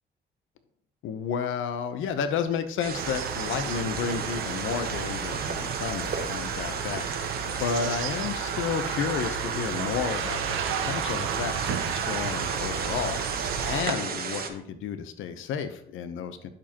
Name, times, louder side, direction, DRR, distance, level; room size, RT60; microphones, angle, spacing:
voice 1, 1.0-13.2 13.6-16.5, left 7 dB, 85° left, 10 dB, 0.8 m, -32 dB
sound 1, 2.8-14.5, right 5 dB, 50° right, 1.1 m, -34 dB
sound 2, 2.9-13.8, right 7 dB, 85° right, 0.8 m, -32 dB
11.5 x 5.1 x 2.9 m, 0.69 s
cardioid pair, 90°, 20 cm